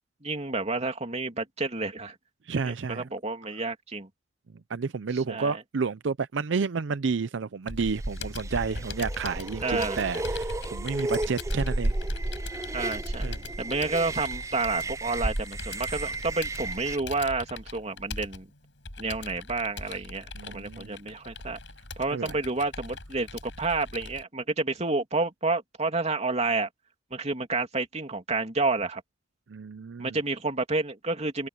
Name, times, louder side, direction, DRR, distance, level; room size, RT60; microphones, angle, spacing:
voice 1, 0.2-2.1 2.6-4.1 5.1-5.6 9.6-10.1 12.7-13.2 13.6-18.5 19.0-21.6 22.0-26.7 27.1-29.0 30.0-31.5, right 3 dB, 35° right, 2.9 m, -30 dB
voice 2, 2.4-3.1 4.7-11.9 12.5-12.7 13.2-13.4 20.4-20.9 22.1-22.4 29.5-30.2, right 5 dB, 75° right, 0.5 m, -30 dB
Computer keyboard, 7.7-24.2, left 3 dB, 75° left, 5.9 m, -41 dB
sound 1, 7.8-17.0, right 2 dB, 15° right, 0.5 m, -32 dB
head